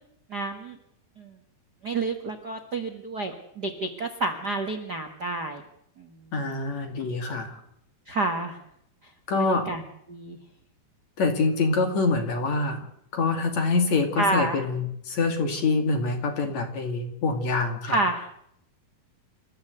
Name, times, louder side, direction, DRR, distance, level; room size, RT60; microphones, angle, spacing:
voice 1, 0.3-0.8 1.2-1.3 1.8-5.6 6.0-6.1 8.1-8.6 9.3-9.8 10.1-10.4 14.2-14.6 17.9-18.2, right 2 dB, 80° right, 4 dB, 0.9 m, -29 dB
voice 2, 6.3-7.6 9.3-9.7 11.2-12.8 13.1-18.0, left 3 dB, 45° left, 5 dB, 3.2 m, -25 dB
28.0 x 14.0 x 8.0 m, 0.72 s
omnidirectional pair, 4.7 m